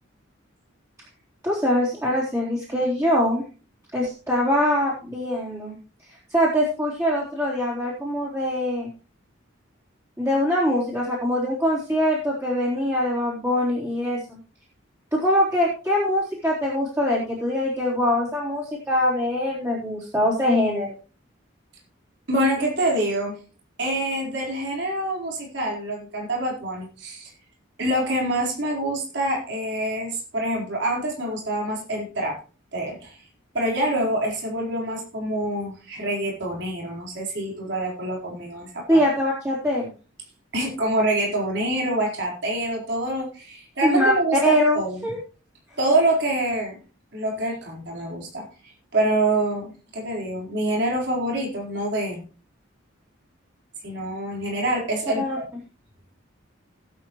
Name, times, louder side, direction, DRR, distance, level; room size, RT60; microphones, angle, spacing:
voice 1, 1.4-3.4 3.9-5.8 6.1-8.9 10.2-14.4 15.1-21.0 38.9-39.9 43.8-45.2 55.1-55.4, equal, 15° right, -6 dB, 3.8 m, -23 dB
voice 2, 22.3-23.3 23.8-27.3 27.8-32.4 32.7-33.2 33.5-39.0 40.5-45.0 45.8-46.8 47.1-48.4 48.9-52.2 53.8-55.4, right 1 dB, 55° right, -2 dB, 4.5 m, -26 dB
19.0 x 8.6 x 3.2 m, 0.37 s
head